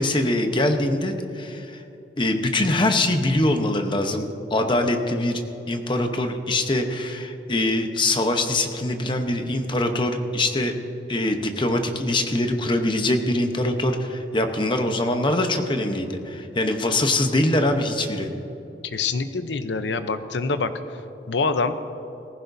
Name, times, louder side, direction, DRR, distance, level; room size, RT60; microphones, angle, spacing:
voice 1, 0.0-1.8 2.2-5.4 5.7-10.7 11.1-18.3, left 1 dB, 30° left, 5 dB, 0.9 m, -23 dB
voice 2, 18.8-20.7 21.3-21.8, left 4 dB, 85° left, 10 dB, 0.7 m, -25 dB
18.5 x 15.0 x 2.7 m, 2.9 s
head